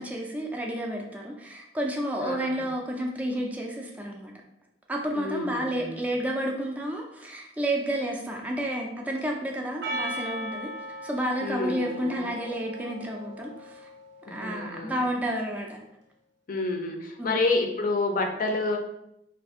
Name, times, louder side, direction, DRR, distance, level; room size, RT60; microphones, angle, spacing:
voice 1, 0.0-4.3 4.9-10.7 11.0-13.9 14.3-15.8 17.2-17.4, right 1 dB, 10° right, 0 dB, 0.3 m, -31 dB
voice 2, 2.2-2.7 5.1-6.0 11.4-12.3 14.3-15.1 16.5-18.8, left 3 dB, 50° left, 3 dB, 0.5 m, -29 dB
Percussion, 9.8-14.4, right 1 dB, 75° right, 0.6 m, -38 dB
2.5 x 2.4 x 3.5 m, 0.81 s
head